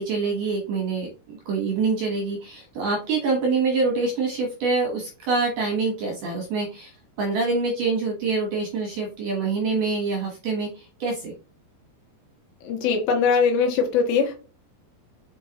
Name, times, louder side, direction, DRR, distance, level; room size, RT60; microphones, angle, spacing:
voice 1, 0.0-6.9 7.2-11.3, right 4 dB, 65° right, 0 dB, 2.2 m, -25 dB
voice 2, 12.6-14.4, left 5 dB, 80° left, 3 dB, 3.4 m, -21 dB
6.2 x 5.5 x 2.9 m, 0.34 s
omnidirectional pair, 5.1 m